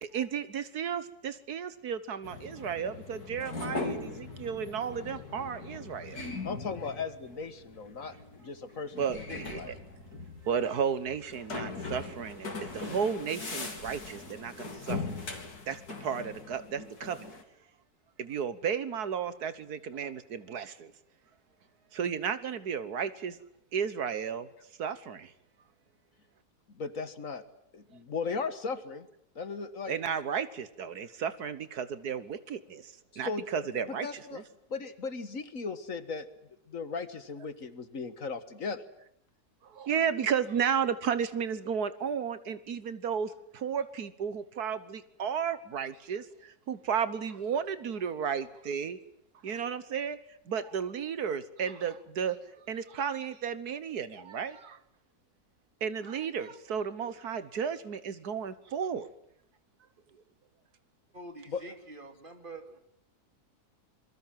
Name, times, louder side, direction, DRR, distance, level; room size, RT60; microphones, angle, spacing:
voice 1, 0.0-6.2 9.0-9.8 10.5-15.0 15.7-17.3 18.2-20.9 21.9-23.4 23.7-24.5 24.8-25.3 29.9-34.4 39.7-49.0 49.4-50.2 50.5-52.4 52.7-54.8 55.8-59.1, right 7 dB, 75° right, 13 dB, 1.7 m, -33 dB
sound 1, 2.2-17.4, left 3 dB, 75° left, 3.7 m, -40 dB
voice 2, 6.4-9.7 26.7-27.4 27.7-29.1 29.4-29.9 33.1-34.4 34.7-36.3 36.7-38.8 61.5-61.6, left 4 dB, 55° left, 11 dB, 1.9 m, -37 dB
voice 3, 61.1-62.8, right 2 dB, 30° right, 5 dB, 2.9 m, -46 dB
27.0 x 22.5 x 7.6 m, 0.73 s
omnidirectional pair, 1.7 m